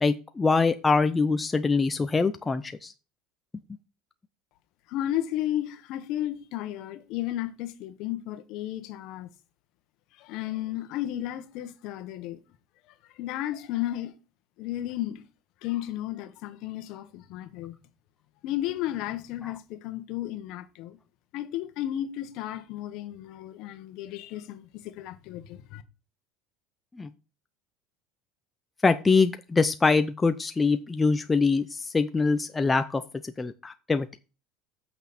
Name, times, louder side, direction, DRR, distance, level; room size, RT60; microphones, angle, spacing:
voice 1, 0.0-2.9 27.0-27.1 28.8-33.0 33.4-34.1, left 4 dB, 15° left, 0.5 m, -24 dB
voice 2, 4.9-9.3 10.2-12.4 13.2-14.1 14.6-15.2 15.6-17.7 18.4-21.0 21.3-25.8, left 13 dB, 60° left, 1.2 m, -33 dB
8.4 x 6.1 x 4.2 m
supercardioid pair, 135°, 0 cm